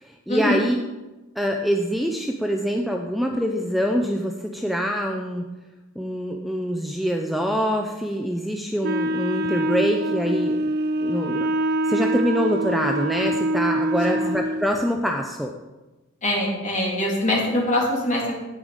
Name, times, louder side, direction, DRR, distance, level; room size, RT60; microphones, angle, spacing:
voice 1, 0.0-0.8 1.4-5.5 6.0-10.7 11.0-11.5 11.8-15.5, equal, ahead, 2 dB, 0.5 m, -25 dB
Wind instrument woodwind instrument, 8.8-14.7, right 1 dB, 50° right, 0.6 m, -24 dB
voice 2, 14.0-14.3 16.2-18.4, left 1 dB, 35° left, -3 dB, 3.0 m, -23 dB
10.0 x 8.9 x 5.0 m, 1.1 s
head